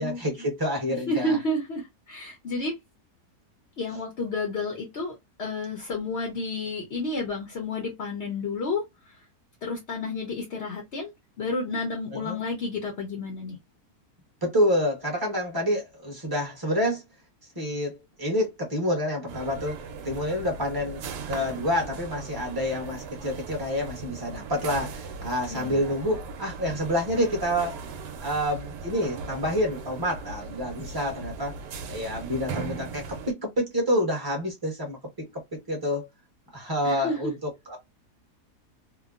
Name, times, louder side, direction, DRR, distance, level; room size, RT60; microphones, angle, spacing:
voice 1, 0.0-1.4 12.1-12.4 14.4-17.0 17.5-21.0 21.3-27.8 28.2-31.5 31.9-36.1 36.5-37.8, equal, 15° right, 0.9 m, -28 dB
voice 2, 0.9-2.8 3.8-8.8 9.6-11.1 11.4-13.6 25.5-25.8 36.8-37.2, left 2 dB, 55° left, 0.8 m, -31 dB
sound 1, 19.3-33.3, right 4 dB, 90° right, 1.2 m, -38 dB
3.1 x 2.2 x 2.4 m
omnidirectional pair, 1.8 m